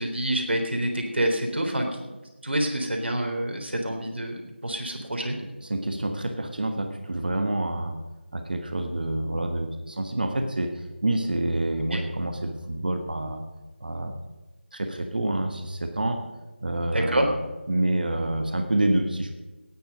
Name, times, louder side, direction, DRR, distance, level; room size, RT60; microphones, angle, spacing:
voice 1, 0.0-2.1 2.4-5.4 11.9-12.0 16.9-17.2, right 1 dB, 65° right, 3 dB, 3.6 m, -27 dB
voice 2, 5.6-8.0 8.3-13.4 13.8-14.2 14.7-16.2 16.6-17.4 17.7-19.4, right 1 dB, 50° right, 6 dB, 1.5 m, -27 dB
18.0 x 9.7 x 5.3 m, 1.2 s
figure-of-eight pair, 170°, 6 cm